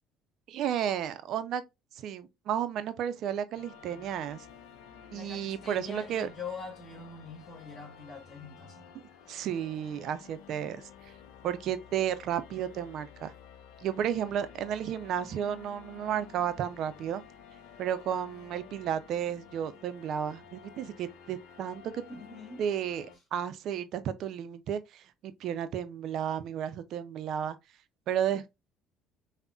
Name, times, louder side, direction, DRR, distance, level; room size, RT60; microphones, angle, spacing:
voice 1, 0.5-1.6 2.0-4.4 5.1-6.3 9.3-10.8 11.4-13.3 13.8-17.2 17.8-22.0 22.6-27.6 28.1-28.5, right 9 dB, 60° right, 0.4 m, -33 dB
sound 1, 3.5-23.2, left 7 dB, 75° left, 0.4 m, -52 dB
voice 2, 5.1-8.9 22.1-22.6, left 4 dB, 40° left, 1.3 m, -44 dB
3.4 x 2.1 x 2.5 m
hypercardioid pair, 65°, 0 cm